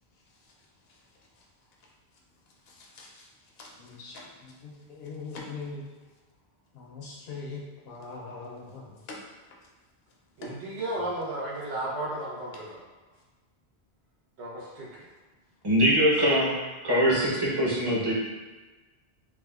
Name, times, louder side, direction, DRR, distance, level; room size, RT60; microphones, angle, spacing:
voice 1, 2.7-3.3 3.6-5.9 6.7-9.2 10.4-10.5, left 3 dB, 70° left, -2 dB, 0.8 m, -41 dB
voice 2, 10.4-12.8 14.4-15.0, right 1 dB, 85° right, -5 dB, 1.0 m, -34 dB
voice 3, 15.6-16.5 16.8-18.1, equal, 25° right, -7 dB, 0.7 m, -22 dB
3.5 x 2.2 x 2.3 m, 1.2 s
omnidirectional pair, 1.1 m